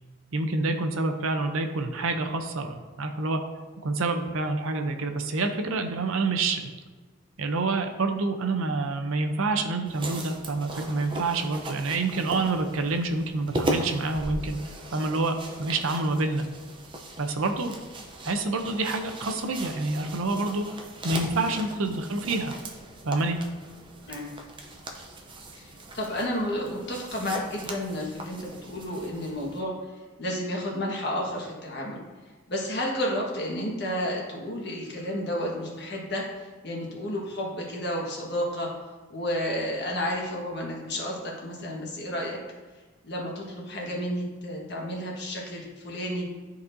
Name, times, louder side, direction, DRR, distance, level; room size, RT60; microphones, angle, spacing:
voice 1, 0.3-3.4 3.8-6.7 7.4-14.6 14.9-16.4 17.2-17.7 18.2-20.6 21.0-22.5 23.0-23.4, right 3 dB, 75° right, 6 dB, 0.7 m, -27 dB
sound 1, 9.9-29.6, right 1 dB, 20° right, 0.6 m, -38 dB
voice 2, 25.6-32.0 32.5-38.7 39.1-42.4 43.0-46.3, equal, 50° left, -2 dB, 1.5 m, -31 dB
12.0 x 4.1 x 2.7 m, 1.4 s
head